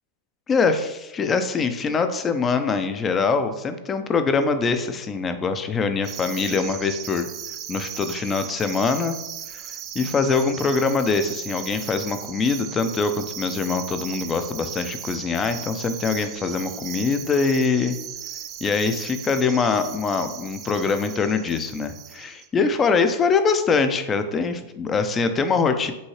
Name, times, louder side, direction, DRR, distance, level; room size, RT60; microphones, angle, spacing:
voice 1, 0.5-7.3 7.7-9.2 9.5-9.6 9.9-18.0 18.6-25.9, left 4 dB, 25° left, 8 dB, 0.5 m, -23 dB
sound 1, 6.0-22.5, right 10 dB, 40° right, 0.5 m, -37 dB
5.4 x 2.7 x 3.1 m, 0.95 s
hypercardioid pair, 115°, 0 cm